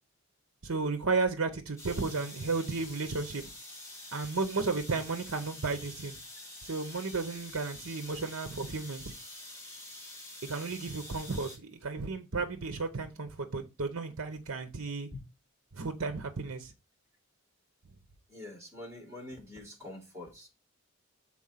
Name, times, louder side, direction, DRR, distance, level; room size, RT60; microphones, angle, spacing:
voice 1, 0.6-3.5 4.1-6.1 6.6-9.1 10.4-15.1 15.7-16.7, right 4 dB, 65° right, 0.8 m, -33 dB
sound 1, 1.8-11.6, left 2 dB, 15° left, 2.0 m, -47 dB
voice 2, 18.3-20.5, left 1 dB, 10° right, 3.3 m, -45 dB
6.2 x 4.3 x 5.7 m
head